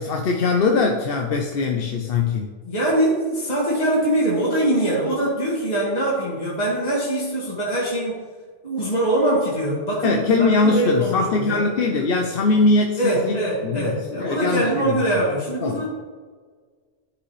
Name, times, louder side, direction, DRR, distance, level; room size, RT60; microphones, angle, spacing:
voice 1, 0.0-2.5 10.0-13.4 13.6-15.2 15.6-15.9, left 3 dB, 65° left, 3 dB, 0.8 m, -21 dB
voice 2, 2.6-8.2 8.6-11.6 13.0-15.9, right 1 dB, 40° left, -7 dB, 2.1 m, -23 dB
11.5 x 5.2 x 3.2 m, 1.5 s
omnidirectional pair, 1.1 m